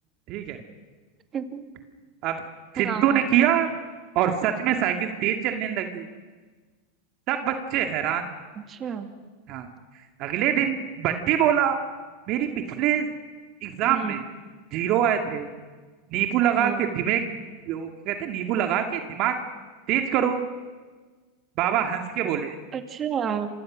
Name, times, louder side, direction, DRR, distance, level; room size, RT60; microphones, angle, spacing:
voice 1, 0.3-0.6 2.2-2.4 2.7-3.7 4.1-6.1 7.3-8.3 9.5-9.7 10.2-11.8 12.3-12.5 12.8-13.1 13.6-14.2 14.7-15.5 16.1-17.2 17.7-19.4 19.9-20.4 21.6-22.6, right 10 dB, 50° right, 5 dB, 2.2 m, -24 dB
voice 2, 1.3-1.7 2.8-3.2 8.7-9.1 13.9-14.2 16.6-16.8 22.7-23.5, right 7 dB, 30° right, 6 dB, 2.6 m, -30 dB
29.0 x 25.0 x 6.4 m, 1.4 s
hypercardioid pair, 100°, 0 cm